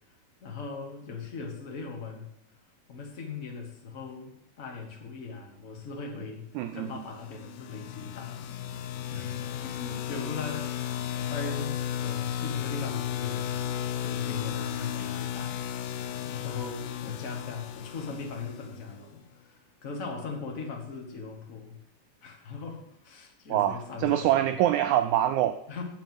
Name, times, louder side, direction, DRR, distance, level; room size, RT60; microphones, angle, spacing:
voice 1, 0.4-2.3 2.9-6.5 6.7-15.9 16.2-21.8 22.2-24.5 25.7-25.8, left 4 dB, 35° left, 1 dB, 1.3 m, -40 dB
voice 2, 6.6-6.9 23.5-25.6, right 12 dB, 85° right, 9 dB, 1.7 m, -25 dB
sound 1, 7.2-19.0, left 10 dB, 85° left, 1.4 m, -34 dB
7.7 x 7.2 x 7.6 m, 0.79 s
omnidirectional pair, 3.9 m